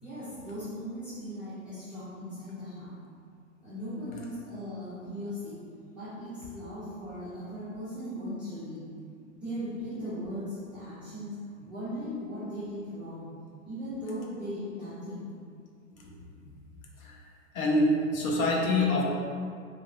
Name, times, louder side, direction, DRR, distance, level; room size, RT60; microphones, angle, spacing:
voice 1, 0.0-3.0 3.6-5.6 5.9-8.8 9.3-11.4 11.7-13.3 13.6-15.3, equal, 5° right, -16 dB, 0.3 m, -38 dB
voice 2, 17.5-19.0, left 1 dB, 80° left, -2 dB, 0.7 m, -26 dB
2.9 x 2.4 x 2.2 m, 2.3 s
hypercardioid pair, 120°, 41 cm